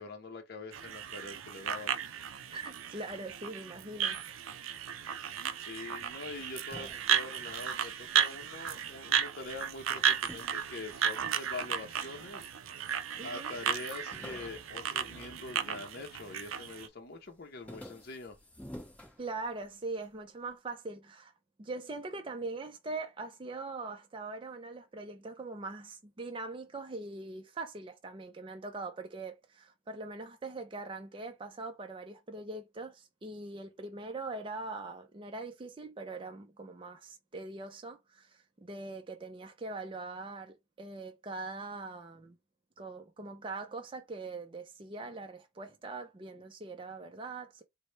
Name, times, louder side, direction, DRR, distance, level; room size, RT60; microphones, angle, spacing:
voice 1, 0.0-2.0 5.6-12.5 13.2-18.4, left 3 dB, 50° left, 0.7 m, -44 dB
sound 1, 0.7-16.9, right 8 dB, 90° right, 0.4 m, -34 dB
voice 2, 2.5-4.2 13.2-13.6 19.2-21.3 21.6-42.4 42.8-47.6, right 3 dB, 25° right, 0.4 m, -42 dB
sound 2, 6.1-8.8 9.1-11.6 12.2-12.9 13.1-13.2 13.5-16.1 16.5-16.9 17.3-19.9, left 1 dB, 5° left, 0.8 m, -52 dB
4.1 x 2.1 x 3.2 m
head